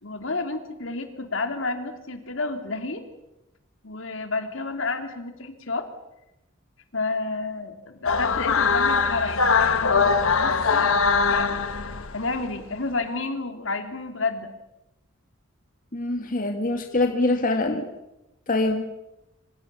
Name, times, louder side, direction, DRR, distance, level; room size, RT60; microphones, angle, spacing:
voice 1, 0.0-3.0 3.8-5.8 6.9-9.4 9.7-10.9 11.3-14.5, left 3 dB, 65° left, 6 dB, 3.2 m, -30 dB
sound 1, 8.1-12.4, left 5 dB, 80° left, 1.4 m, -22 dB
voice 2, 15.9-17.9 18.5-18.9, left 2 dB, 40° left, 4 dB, 2.1 m, -24 dB
27.5 x 26.0 x 7.0 m, 0.92 s
head